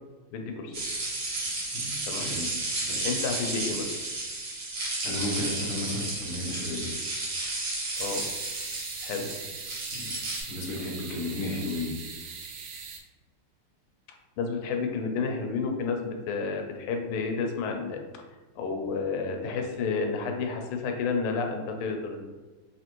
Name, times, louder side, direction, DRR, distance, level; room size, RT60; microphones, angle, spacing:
voice 1, 0.3-0.8 2.1-2.3 3.0-3.9 8.0-8.3 9.0-9.3 14.4-18.2 18.5-22.2, left 4 dB, 80° left, 4 dB, 1.5 m, -31 dB
sound 1, 0.7-10.4, right 2 dB, 55° right, 0.9 m, -32 dB
voice 2, 1.7-2.5 2.9-3.0 5.0-6.9 9.9-10.1 10.5-11.9, left 2 dB, 65° left, -3 dB, 0.6 m, -33 dB
sound 2, 7.9-13.0, right 5 dB, 75° right, 1.0 m, -41 dB
4.1 x 2.6 x 2.9 m, 1.3 s
omnidirectional pair, 2.4 m